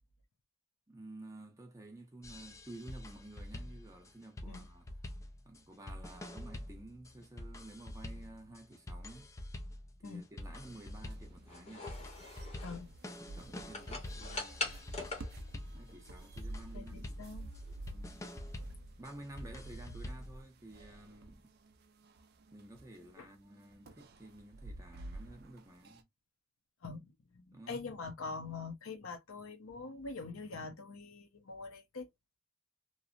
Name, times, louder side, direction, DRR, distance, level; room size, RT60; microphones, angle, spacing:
voice 1, 0.9-4.9 5.4-9.3 10.0-11.9 13.3-14.9 15.7-17.1 17.9-18.2 19.0-21.5 22.5-26.1 27.5-27.8, right 1 dB, 15° right, 0.7 m, -52 dB
sound 1, 2.2-20.4, left 1 dB, 15° left, 0.3 m, -46 dB
sound 2, 10.2-18.8, left 2 dB, 30° left, 0.8 m, -45 dB
sound 3, 10.4-26.0, right 2 dB, 50° right, 0.4 m, -51 dB
voice 2, 16.7-17.5 18.2-18.3 23.2-23.3 26.8-32.1, left 4 dB, 75° left, 0.7 m, -44 dB
3.0 x 2.0 x 2.4 m
head